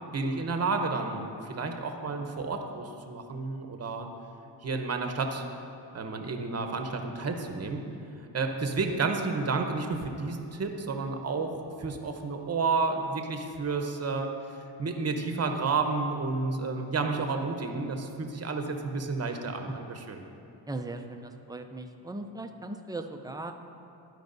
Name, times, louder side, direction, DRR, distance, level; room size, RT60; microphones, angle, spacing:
voice 1, 0.1-4.1 4.6-5.4 5.9-7.8 8.2-11.5 11.8-14.3 14.8-20.3, right 4 dB, 35° right, 5 dB, 0.9 m, -31 dB
voice 2, 20.7-23.5, right 2 dB, 10° right, 5 dB, 0.5 m, -38 dB
12.5 x 4.7 x 2.7 m, 2.7 s
supercardioid pair, 60°, 46 cm